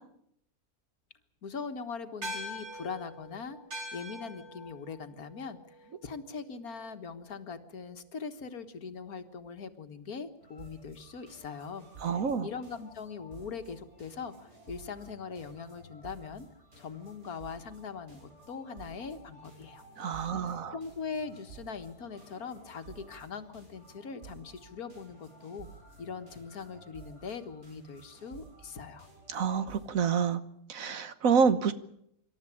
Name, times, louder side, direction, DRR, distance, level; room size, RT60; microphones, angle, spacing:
voice 1, 1.4-3.6 3.9-16.5 16.8-19.8 20.1-25.7 26.0-29.1, left 5 dB, 90° left, 8 dB, 2.0 m, -41 dB
sound 1, 2.2-6.9, equal, 50° right, 3.5 m, -44 dB
sound 2, 10.4-29.9, right 4 dB, 90° right, 7.0 m, -53 dB
voice 2, 12.0-12.5 20.0-20.7 29.3-30.4 30.7-31.7, right 6 dB, 70° right, 12 dB, 1.6 m, -27 dB
26.5 x 12.5 x 10.0 m, 0.74 s
omnidirectional pair, 1.5 m